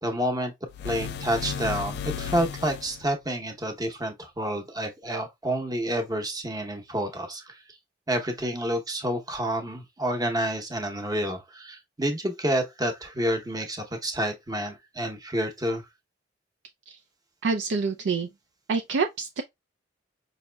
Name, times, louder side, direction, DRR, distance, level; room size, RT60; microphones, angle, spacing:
voice 1, 0.0-0.5 0.8-7.6 8.1-15.8, right 1 dB, 20° right, 0.8 m, -29 dB
sound 1, 0.7-3.1, left 8 dB, 60° left, 0.3 m, -34 dB
voice 2, 17.4-18.3 18.7-19.4, right 4 dB, 75° right, 0.4 m, -26 dB
5.2 x 2.8 x 2.2 m
head